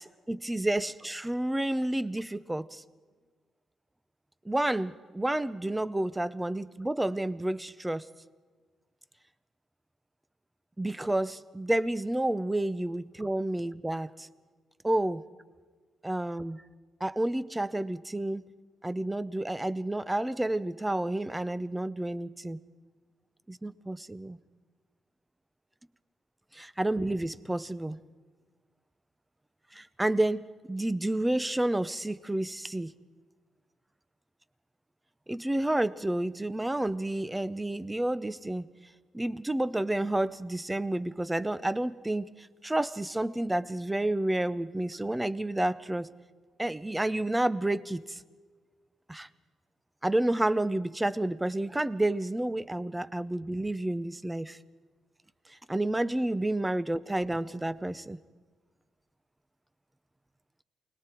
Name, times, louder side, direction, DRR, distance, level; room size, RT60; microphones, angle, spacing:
voice 1, 0.0-2.8 4.4-8.1 10.8-14.3 14.8-15.2 16.0-16.6 17.0-18.4 18.8-22.6 23.5-24.4 26.5-28.0 29.7-32.9 35.3-38.6 39.1-46.1 46.6-48.2 49.1-49.3 50.0-54.6 55.7-58.2, right 1 dB, 10° right, 14 dB, 0.8 m, -30 dB
28.5 x 20.5 x 4.5 m, 1.4 s
cardioid pair, 110°, 0 cm